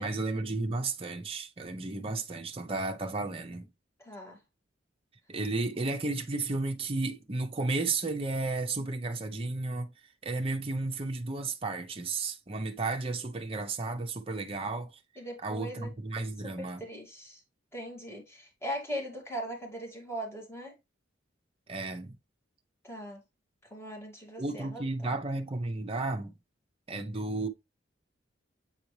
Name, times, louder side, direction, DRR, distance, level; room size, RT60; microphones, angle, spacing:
voice 1, 0.0-3.7 5.3-9.9 10.2-15.0 15.4-16.9 21.7-22.2 24.4-26.4 26.9-27.5, right 3 dB, 30° right, 0.7 m, -33 dB
voice 2, 4.0-4.4 15.2-15.9 16.6-17.4 17.7-20.8 22.8-23.2 23.7-24.8, equal, 15° left, 2.4 m, -39 dB
7.9 x 4.1 x 3.2 m
head